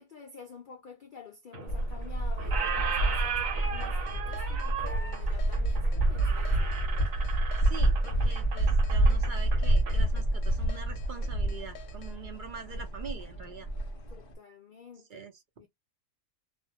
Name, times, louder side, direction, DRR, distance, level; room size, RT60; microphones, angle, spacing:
voice 1, 0.0-6.8 8.1-8.4 14.1-15.3 15.6-15.7, left 5 dB, 90° left, 0.4 m, -50 dB
Squeak, 1.5-2.1 2.4-10.0, right 7 dB, 70° right, 1.2 m, -36 dB
sound 1, 1.7-14.3, right 1 dB, 45° left, 1.0 m, -28 dB
sound 2, 3.8-12.2, left 9 dB, 65° left, 0.9 m, -51 dB
voice 2, 7.6-13.7 15.1-15.3, right 5 dB, 50° right, 0.6 m, -44 dB
2.5 x 2.0 x 2.7 m
omnidirectional pair, 1.5 m